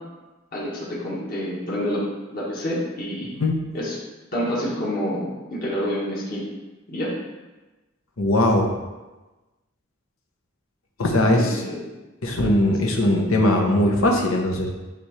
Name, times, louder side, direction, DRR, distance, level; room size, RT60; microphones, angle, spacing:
voice 1, 0.5-3.3 3.7-4.0 4.3-6.5 6.9-7.1 11.3-11.8, equal, 45° left, -5 dB, 1.7 m, -28 dB
voice 2, 8.2-8.7 11.0-11.6 12.2-14.7, left 1 dB, 80° left, 1 dB, 1.0 m, -20 dB
9.3 x 3.5 x 3.3 m, 1.1 s
head